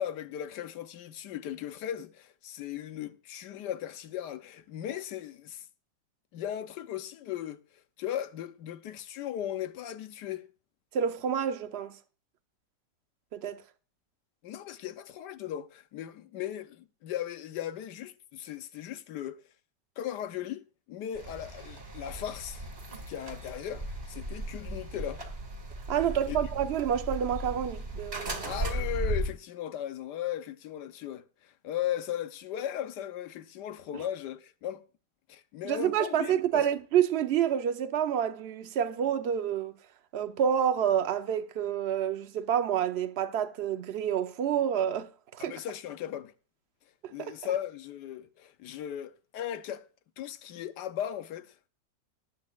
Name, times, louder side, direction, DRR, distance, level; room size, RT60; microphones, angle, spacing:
voice 1, 0.0-5.7 6.3-7.6 8.0-10.5 14.4-19.4 20.0-22.6 23.1-25.2 26.3-26.5 28.4-34.8 35.3-36.7 45.4-46.3 47.1-49.9 50.2-51.5, left 10 dB, 75° left, 1.3 m, -37 dB
voice 2, 10.9-12.0 13.3-13.6 25.9-28.5 35.6-39.7 40.1-45.6 47.0-47.3, right 9 dB, 55° right, 0.7 m, -28 dB
sound 1, 21.1-29.3, right 1 dB, 35° right, 2.1 m, -36 dB
19.0 x 8.4 x 2.4 m
omnidirectional pair, 1.9 m